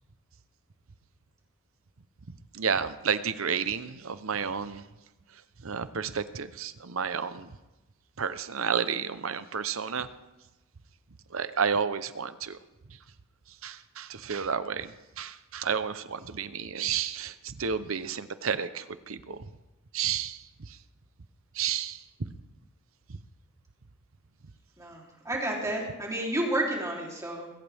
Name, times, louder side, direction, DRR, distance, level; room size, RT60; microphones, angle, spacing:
voice 1, 2.5-4.9 5.6-7.5 8.2-10.1 11.3-12.6 13.6-19.4 19.9-20.4 21.5-22.0 23.1-23.2, right 6 dB, 70° right, 13 dB, 0.8 m, -31 dB
voice 2, 24.8-27.5, right 1 dB, 15° right, -2 dB, 3.4 m, -31 dB
21.0 x 16.5 x 3.5 m, 1.0 s
head